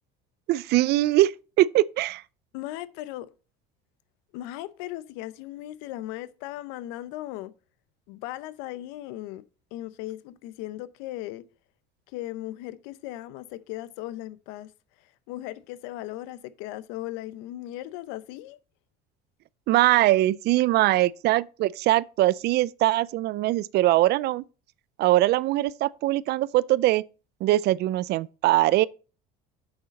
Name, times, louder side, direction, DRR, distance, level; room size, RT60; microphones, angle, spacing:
voice 1, 0.5-1.3 1.6-2.2 19.7-24.4 25.0-27.0 27.4-28.9, right 16 dB, 55° right, 0.4 m, -22 dB
voice 2, 2.5-3.3 4.3-7.5 8.1-9.4 9.7-11.4 12.1-14.7 15.3-18.6, left 15 dB, 80° left, 0.7 m, -37 dB
7.8 x 6.4 x 4.1 m
supercardioid pair, 110°, 20 cm